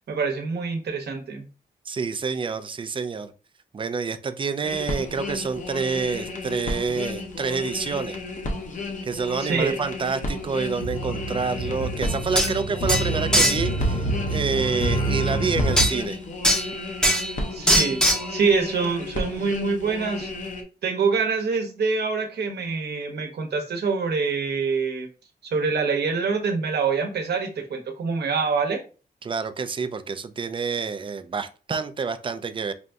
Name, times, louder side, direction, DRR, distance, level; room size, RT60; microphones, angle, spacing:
voice 1, 0.0-1.5 9.4-9.8 17.5-20.3 20.8-25.1 25.4-28.8, right 5 dB, 80° right, 0.8 m, -25 dB
voice 2, 1.9-3.3 3.7-8.2 9.0-16.2 29.2-32.7, right 5 dB, 30° right, 0.4 m, -28 dB
sound 1, 4.6-20.6, left 2 dB, 45° left, 0.7 m, -33 dB
sound 2, 10.3-15.9, right 1 dB, 80° left, 1.1 m, -27 dB
sound 3, 12.0-12.1 12.4-12.5 12.9-13.6 15.8-15.9 16.4-16.7 17.0-17.3 17.7-18.3, equal, 5° left, 0.6 m, -20 dB
5.0 x 2.6 x 2.3 m
wide cardioid pair, 115°, 17 cm